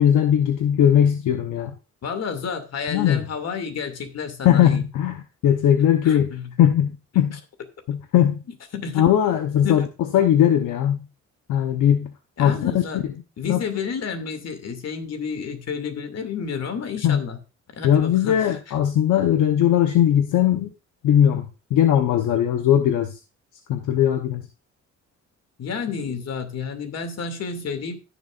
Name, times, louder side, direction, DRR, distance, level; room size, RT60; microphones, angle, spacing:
voice 1, 0.0-1.7 2.9-3.2 4.4-6.3 6.6-7.4 7.9-8.4 8.9-9.9 10.1-11.1 11.5-12.1 12.4-13.1 13.4-13.6 17.0-17.2 17.8-20.7 21.0-23.1 23.7-24.4, left 10 dB, 80° left, 6 dB, 1.1 m, -19 dB
voice 2, 2.0-4.9 6.0-6.5 8.7-9.0 9.6-9.9 12.4-13.0 13.4-17.4 17.8-18.6 25.6-28.0, left 6 dB, 55° left, 7 dB, 2.6 m, -30 dB
15.0 x 7.0 x 2.5 m, 0.31 s
cardioid pair, 90°, 30 cm